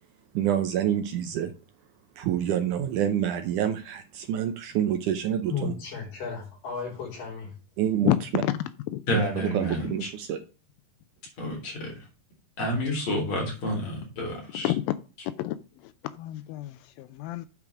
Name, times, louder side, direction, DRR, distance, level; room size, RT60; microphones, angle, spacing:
voice 1, 0.3-1.5 2.2-5.7 7.8-8.1 9.1-10.4, right 10 dB, 75° right, 2.0 m, -27 dB
voice 2, 5.5-7.5, left 6 dB, 65° left, 5.1 m, -34 dB
voice 3, 8.0-8.5 8.9-9.0 14.5-14.9 15.3-17.5, left 14 dB, 85° left, 2.3 m, -29 dB
voice 4, 9.1-9.9 11.4-12.0 12.6-14.7, left 1 dB, 50° left, 4.9 m, -29 dB
8.6 x 4.8 x 6.2 m
omnidirectional pair, 4.1 m